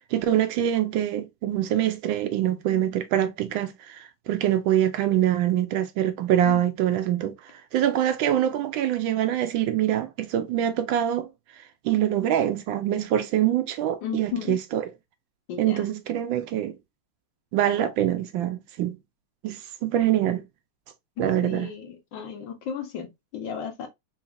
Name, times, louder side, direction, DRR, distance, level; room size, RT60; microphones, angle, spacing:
voice 1, 0.1-11.3 11.6-14.9 15.6-16.8 17.5-19.0 19.4-20.4 21.2-21.7, right 11 dB, 75° right, 1.3 m, -24 dB
voice 2, 14.0-14.6 15.5-15.8 21.4-23.9, left 8 dB, 70° left, 1.4 m, -34 dB
4.0 x 3.2 x 2.3 m
omnidirectional pair, 2.3 m